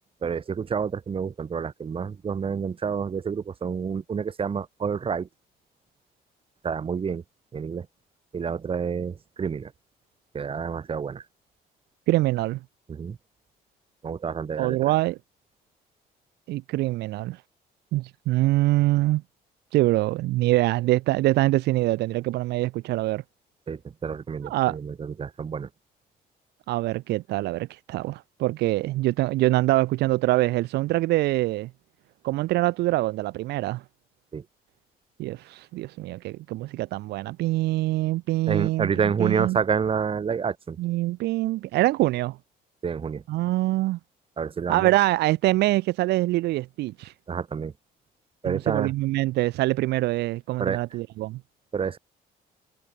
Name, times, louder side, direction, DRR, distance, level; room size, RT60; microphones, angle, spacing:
voice 1, 0.2-5.3 6.6-7.2 7.5-7.9 8.3-9.7 10.3-11.2 12.9-13.2 14.0-14.9 23.7-25.7 34.3-34.4 38.5-40.8 42.8-43.2 44.4-44.9 47.3-47.7 48.4-48.9 50.6-50.8 51.7-52.0, right 6 dB, 35° right, 1.8 m, -28 dB
voice 2, 12.1-12.6 14.6-15.2 16.5-17.4 17.9-19.2 19.7-23.2 24.4-24.8 26.7-31.7 32.2-33.8 35.2-38.9 39.2-39.6 40.8-42.4 43.3-44.0 44.7-47.1 48.5-51.4, right 17 dB, 80° right, 0.9 m, -24 dB
cardioid pair, 110°, 17 cm